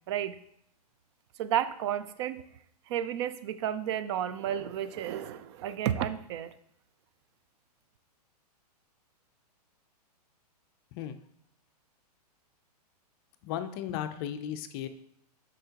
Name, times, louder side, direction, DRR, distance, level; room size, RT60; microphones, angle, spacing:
voice 1, 1.4-2.4 2.9-6.5, right 10 dB, 40° right, 13 dB, 0.4 m, -32 dB
voice 2, 13.4-14.9, left 10 dB, 35° left, 10 dB, 0.5 m, -35 dB
6.6 x 5.2 x 2.9 m, 0.71 s
hypercardioid pair, 135°, 20 cm